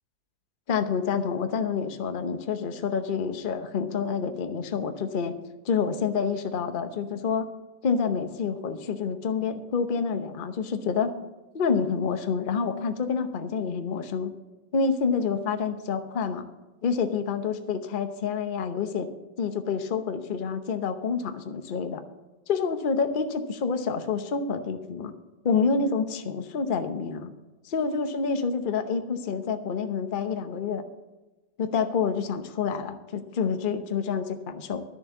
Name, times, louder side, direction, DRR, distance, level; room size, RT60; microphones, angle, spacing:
voice 1, 0.7-5.3 5.6-7.5 7.8-11.1 11.5-14.3 14.7-16.5 16.8-19.1 19.4-22.0 22.5-25.1 25.4-27.3 27.6-30.8 31.6-34.8, left 5 dB, 40° left, 8 dB, 0.7 m, -28 dB
11.5 x 6.9 x 7.0 m, 1.1 s
omnidirectional pair, 2.0 m